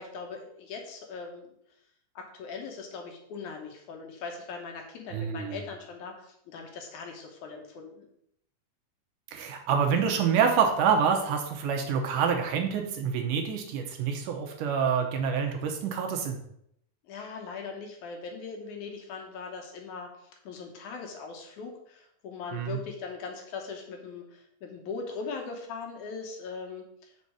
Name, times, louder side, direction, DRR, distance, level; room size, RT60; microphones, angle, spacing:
voice 1, 0.0-1.5 2.2-8.1 17.1-27.1, left 4 dB, 70° left, 2 dB, 2.3 m, -40 dB
voice 2, 5.1-5.6 9.3-16.4 22.5-22.8, right 7 dB, 80° right, 3 dB, 2.3 m, -27 dB
6.3 x 4.1 x 6.1 m, 0.71 s
omnidirectional pair, 3.8 m